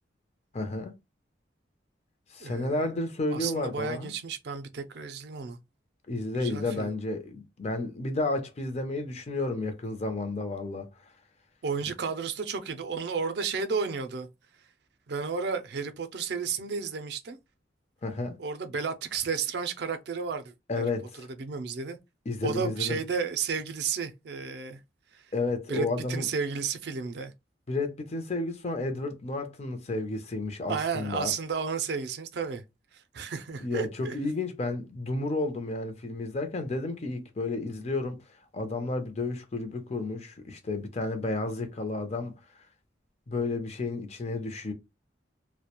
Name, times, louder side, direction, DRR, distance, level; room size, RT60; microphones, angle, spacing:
voice 1, 0.5-0.9 2.3-4.1 6.1-10.9 18.0-18.4 20.7-21.3 22.3-23.0 25.3-26.3 27.7-31.3 33.6-38.2 38.5-42.3 43.3-44.7, left 2 dB, 35° left, 0.5 m, -32 dB
voice 2, 2.4-2.8 3.3-5.6 6.3-6.9 11.6-14.3 15.1-17.4 18.4-20.9 21.4-22.0 22.4-24.8 25.1-25.2 25.7-27.3 30.7-32.6 32.9-34.2, right 5 dB, 60° right, 0.4 m, -32 dB
2.3 x 2.1 x 2.9 m
head